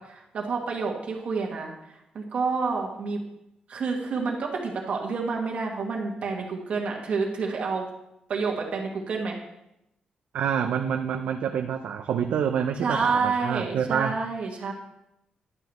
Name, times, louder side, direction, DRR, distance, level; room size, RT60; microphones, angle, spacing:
voice 1, 0.0-3.2 3.7-7.9 8.3-9.4 12.8-14.7, right 4 dB, 55° right, 0 dB, 1.6 m, -29 dB
voice 2, 10.3-14.2, right 8 dB, 85° right, 6 dB, 0.4 m, -27 dB
11.0 x 7.0 x 3.1 m, 0.85 s
wide cardioid pair, 145°, 3 cm